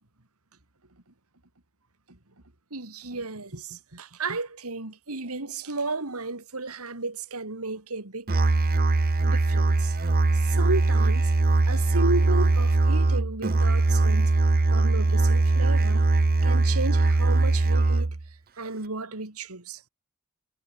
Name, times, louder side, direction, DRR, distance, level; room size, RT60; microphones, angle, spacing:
voice 1, 2.7-8.3 9.2-9.9 10.3-11.3 11.7-14.3 14.7-16.1 16.4-18.1 18.6-19.8, right 3 dB, 80° right, 2.8 m, -33 dB
Musical instrument, 8.3-18.2, right 2 dB, 45° right, 0.7 m, -21 dB
head